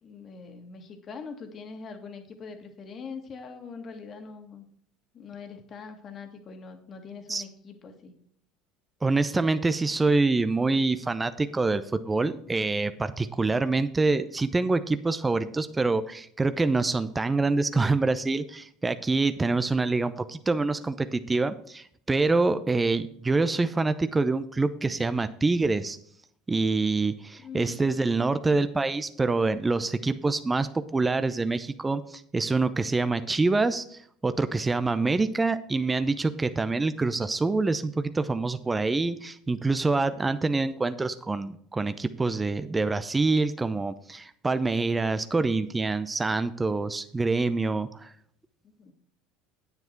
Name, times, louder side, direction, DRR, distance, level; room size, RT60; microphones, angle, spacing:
voice 1, 0.0-4.7 5.1-8.1 27.4-27.8 48.6-48.9, left 5 dB, 40° left, 5 dB, 1.9 m, -42 dB
voice 2, 9.0-26.0 26.5-48.1, right 3 dB, 15° right, 11 dB, 0.6 m, -26 dB
9.4 x 8.0 x 4.5 m, 0.64 s
hypercardioid pair, 80°, 0 cm